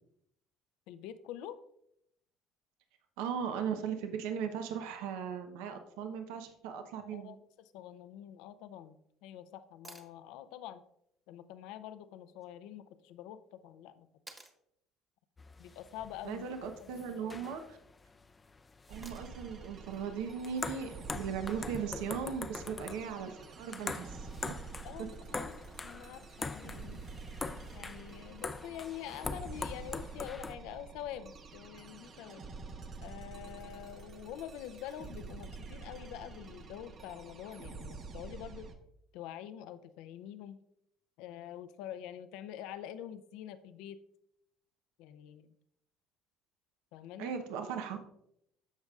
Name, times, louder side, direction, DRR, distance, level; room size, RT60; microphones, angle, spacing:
voice 1, 0.9-1.6 7.1-10.8 11.3-14.4 15.6-16.5 16.8-17.3 24.8-27.0 27.7-32.4 33.0-38.7 39.1-40.6 41.2-44.0 45.0-45.5 46.9-47.3, left 10 dB, 80° left, 12 dB, 0.6 m, -46 dB
voice 2, 3.2-7.4 16.2-17.8 18.9-24.6 47.2-48.0, right 7 dB, 85° right, 6 dB, 0.9 m, -38 dB
sound 1, 9.8-10.1 12.4-12.5 14.3-14.6 16.6-17.0 19.0-19.5 21.6-21.7, right 2 dB, 15° right, 1.3 m, -53 dB
sound 2, 15.4-30.6, left 3 dB, 20° left, 0.5 m, -43 dB
sound 3, 18.9-38.7, right 4 dB, 50° right, 1.1 m, -48 dB
14.0 x 5.2 x 2.4 m, 0.75 s
supercardioid pair, 100°, 0 cm